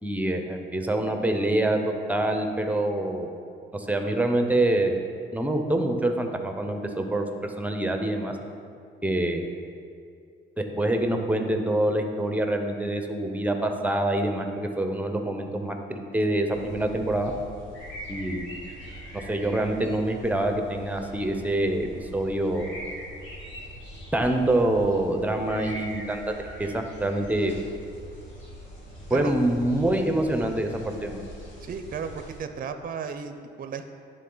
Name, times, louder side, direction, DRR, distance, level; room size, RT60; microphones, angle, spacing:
voice 1, 0.0-1.8 2.1-3.3 3.7-5.0 5.3-7.2 7.6-8.3 9.0-9.4 10.6-17.3 18.1-18.5 19.3-21.9 22.1-22.7 24.1-26.3 26.6-27.5 29.1-31.2, right 1 dB, 5° right, 5 dB, 0.7 m, -25 dB
sound 1, 16.5-32.4, equal, 75° left, 1.8 m, -42 dB
voice 2, 31.6-33.8, right 6 dB, 45° right, 8 dB, 0.5 m, -34 dB
11.0 x 3.8 x 3.9 m, 2.4 s
cardioid pair, 90°, 20 cm